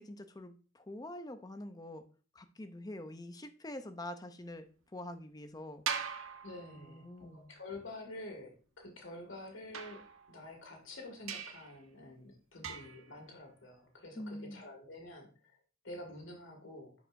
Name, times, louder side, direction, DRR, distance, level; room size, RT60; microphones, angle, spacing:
voice 1, 0.0-2.0 2.4-4.7 4.9-5.8 6.8-7.5 14.2-14.6, left 1 dB, 20° left, 9 dB, 0.6 m, -45 dB
sound 1, 5.9-7.2 9.7-10.6 11.3-11.8 12.6-13.1, right 7 dB, 90° right, 0.8 m, -41 dB
voice 2, 6.4-10.0 10.3-15.6 15.8-16.9, left 2 dB, 75° left, 2 dB, 2.1 m, -48 dB
11.0 x 4.8 x 2.6 m, 0.38 s
head